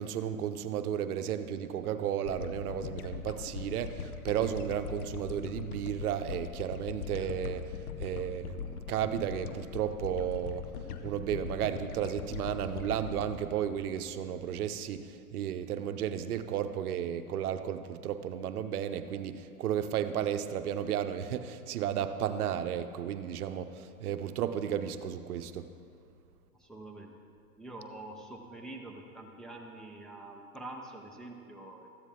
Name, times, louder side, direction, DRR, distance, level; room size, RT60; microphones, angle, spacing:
voice 1, 0.0-7.7 8.0-10.7 11.0-25.7, right 9 dB, 80° right, 9 dB, 0.7 m, -33 dB
sound 1, 2.3-14.7, left 7 dB, 80° left, 0.9 m, -41 dB
voice 2, 26.5-27.2 27.6-31.9, right 2 dB, ahead, -2 dB, 0.6 m, -46 dB
13.5 x 9.7 x 3.5 m, 2.4 s
hypercardioid pair, 125°, 44 cm